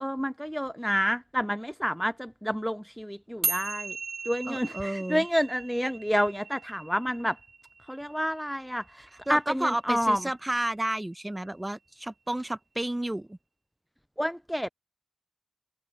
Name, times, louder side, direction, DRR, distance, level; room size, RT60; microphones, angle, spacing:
voice 1, 0.0-3.9 4.3-7.4 7.9-10.2 14.2-14.7, equal, ahead, 0.3 m, -29 dB
sound 1, 3.4-10.0, right 4 dB, 70° right, 1.4 m, -38 dB
voice 2, 4.5-5.2 9.1-13.4, right 1 dB, 20° right, 1.1 m, -31 dB
wide cardioid pair, 80°, 0 cm